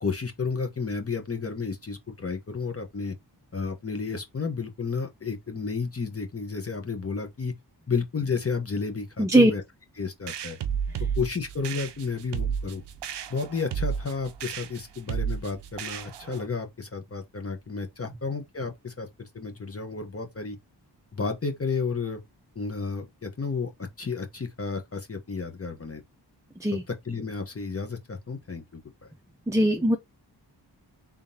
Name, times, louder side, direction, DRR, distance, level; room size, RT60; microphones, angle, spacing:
voice 1, 0.0-3.2 3.5-7.5 7.9-9.6 10.0-10.6 11.2-12.8 13.3-20.6 21.1-22.2 22.5-23.7 24.0-26.0 26.7-28.8, left 4 dB, 35° left, 1.0 m, -32 dB
voice 2, 9.2-9.5 26.6-26.8 29.5-30.0, right 1 dB, 10° right, 0.6 m, -20 dB
sound 1, 10.3-16.5, right 7 dB, 85° right, 0.6 m, -32 dB
3.7 x 3.6 x 2.7 m
cardioid pair, 65°, 40 cm